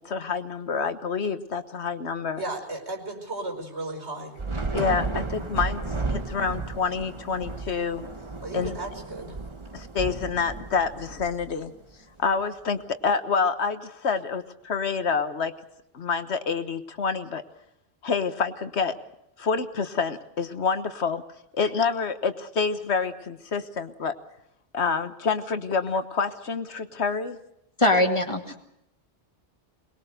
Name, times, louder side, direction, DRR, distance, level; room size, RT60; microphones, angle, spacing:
voice 1, 0.0-2.4 4.7-8.0 8.5-8.7 9.7-11.7 12.2-15.5 15.9-17.4 18.0-18.9 19.4-21.2 21.5-24.1 24.7-27.4, left 5 dB, 75° left, 10 dB, 1.5 m, -27 dB
voice 2, 2.4-4.3 8.4-9.4, right 2 dB, 80° right, 4 dB, 5.2 m, -35 dB
Thunder / Rain, 4.4-11.9, right 3 dB, 25° right, 1.5 m, -33 dB
voice 3, 27.8-28.6, left 1 dB, 25° left, 3 dB, 2.2 m, -22 dB
23.0 x 21.0 x 6.6 m, 0.79 s
omnidirectional pair, 1.1 m